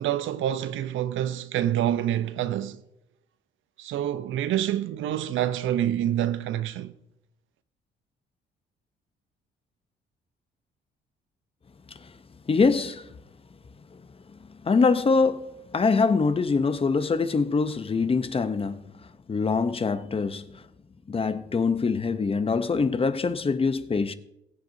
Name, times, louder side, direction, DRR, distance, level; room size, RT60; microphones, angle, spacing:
voice 1, 0.0-2.8 3.8-6.9, right 11 dB, 80° right, 0.6 m, -27 dB
voice 2, 12.5-13.1 14.6-18.8 19.3-20.6 21.1-24.1, left 4 dB, 30° left, 0.7 m, -24 dB
21.5 x 7.8 x 2.7 m
cardioid pair, 90°, 20 cm